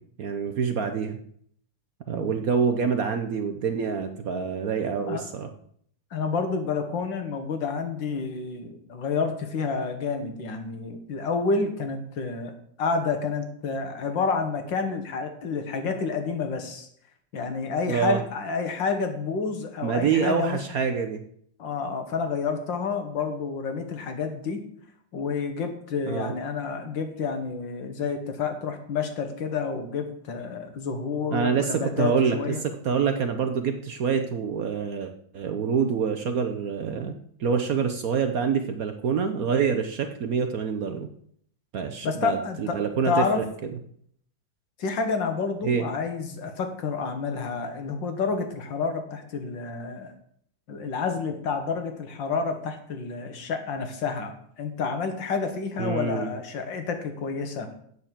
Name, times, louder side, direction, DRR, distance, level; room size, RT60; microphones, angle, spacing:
voice 1, 0.2-1.2 2.1-5.5 17.9-18.2 19.8-21.2 26.1-26.3 31.3-41.1 41.7-43.5 45.6-45.8 55.8-56.3, right 6 dB, 60° right, 7 dB, 1.0 m, -26 dB
voice 2, 6.1-16.9 17.3-20.6 21.6-24.6 25.1-32.6 42.0-42.8 43.0-43.4 44.8-50.1 50.7-57.7, left 5 dB, 70° left, 6 dB, 2.0 m, -29 dB
8.2 x 6.6 x 7.4 m, 0.65 s
omnidirectional pair, 2.1 m